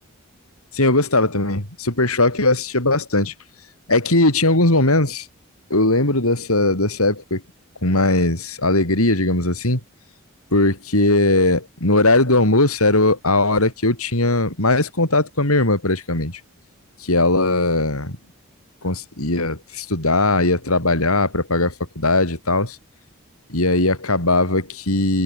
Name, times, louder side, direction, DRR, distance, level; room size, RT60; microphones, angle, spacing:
voice 1, 0.7-3.3 3.9-5.3 5.7-7.4 7.8-9.8 10.5-16.3 17.0-18.2 18.8-22.8 23.5-25.2, left 2 dB, 85° left, 5.5 m, -19 dB
head